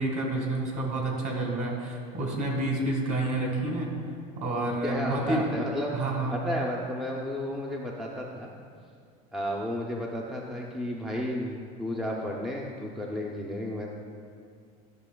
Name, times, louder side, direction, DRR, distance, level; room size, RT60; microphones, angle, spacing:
voice 1, 0.0-3.9 4.4-5.4 5.9-6.4, right 2 dB, 45° right, 0 dB, 1.6 m, -29 dB
voice 2, 4.8-5.9 6.3-8.5 9.3-13.9, left 1 dB, ahead, -2 dB, 0.4 m, -32 dB
12.0 x 5.6 x 2.2 m, 2.3 s
cardioid pair, 140°, 18 cm